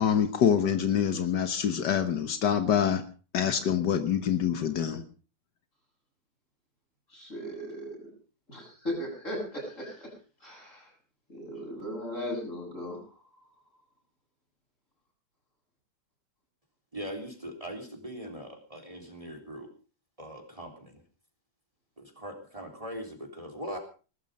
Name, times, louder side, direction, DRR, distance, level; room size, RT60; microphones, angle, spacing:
voice 1, 0.0-3.0 3.3-5.0, left 8 dB, 80° left, 9 dB, 1.8 m, -26 dB
voice 2, 7.1-8.0 8.5-10.1 10.4-10.9 11.3-13.0, equal, 45° left, 0 dB, 8.2 m, -37 dB
voice 3, 16.9-19.7 20.2-21.0 22.0-23.8, equal, 20° right, 5 dB, 3.6 m, -40 dB
19.5 x 13.0 x 5.3 m, 0.37 s
omnidirectional pair, 1.8 m